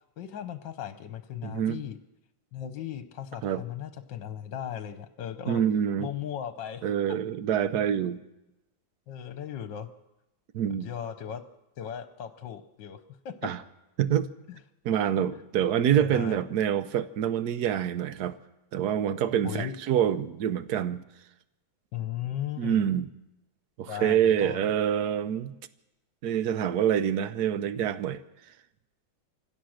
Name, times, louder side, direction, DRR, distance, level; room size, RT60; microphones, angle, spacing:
voice 1, 0.2-2.0 2.5-5.6 6.0-6.8 9.1-9.9 10.8-11.4 11.8-13.5 14.5-14.6 15.9-16.4 19.4-19.8 21.9-22.8 23.9-24.6, left 10 dB, 65° left, 10 dB, 1.5 m, -37 dB
voice 2, 1.4-1.8 3.4-3.6 5.5-6.1 6.8-8.2 10.5-10.9 13.4-13.6 14.0-14.3 14.8-18.4 18.7-21.0 22.6-23.1 23.8-25.5 26.2-28.2, right 9 dB, 60° right, 13 dB, 1.2 m, -26 dB
26.0 x 16.5 x 6.5 m, 0.97 s
omnidirectional pair, 2.3 m